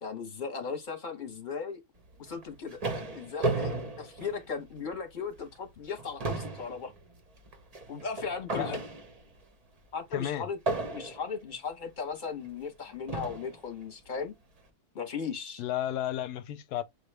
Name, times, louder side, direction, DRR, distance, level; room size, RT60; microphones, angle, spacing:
voice 1, 0.0-1.8 2.2-6.9 7.9-8.8 9.9-10.6 10.9-14.3 14.9-15.6, left 5 dB, 35° left, 0.9 m, -37 dB
sound 1, 2.3-4.9 5.4-5.6 5.9-9.4 10.7-11.4 12.3-12.4 13.1-13.6, right 3 dB, 40° right, 0.5 m, -34 dB
voice 2, 10.1-10.5 15.6-16.8, left 11 dB, 85° left, 1.1 m, -32 dB
6.5 x 2.4 x 3.2 m
omnidirectional pair, 1.7 m